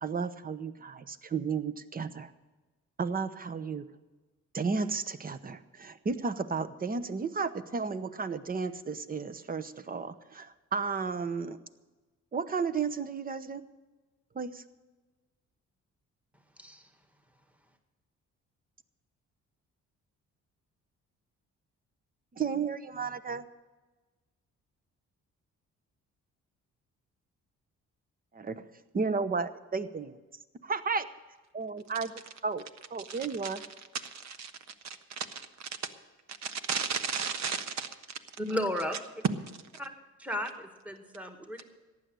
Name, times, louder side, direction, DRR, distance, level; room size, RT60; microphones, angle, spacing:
voice 1, 0.0-2.3 3.0-3.8 4.5-11.6 12.3-13.6 14.3-14.6 22.3-23.4 28.3-28.6 28.9-30.2 30.6-31.1 31.5-32.1 32.4-32.6 32.9-33.6, right 5 dB, 30° right, 13 dB, 0.9 m, -33 dB
voice 2, 33.0-33.5 34.2-34.5 34.8-35.7 36.4-37.9, right 6 dB, 65° right, 9 dB, 1.4 m, -35 dB
voice 3, 38.4-39.0 39.8-39.9 40.2-40.5 40.9-41.6, left 1 dB, 5° right, 5 dB, 1.9 m, -33 dB
15.0 x 10.5 x 6.3 m, 1.2 s
cardioid pair, 90°, 30 cm